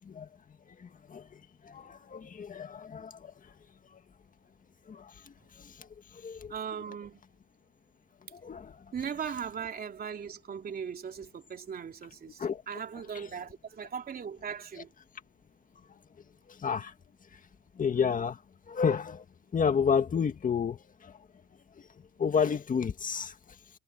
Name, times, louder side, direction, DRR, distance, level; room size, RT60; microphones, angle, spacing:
voice 1, 1.7-3.1 4.9-5.0 6.2-6.5 8.4-8.7 12.4-12.6 16.6-16.9 17.8-18.4 18.7-19.2 19.5-20.8 22.2-23.3, left 6 dB, 45° left, 1.9 m, -29 dB
voice 2, 6.5-7.2 8.9-14.9, right 7 dB, 50° right, 3.0 m, -38 dB
cardioid pair, 90°, 20 cm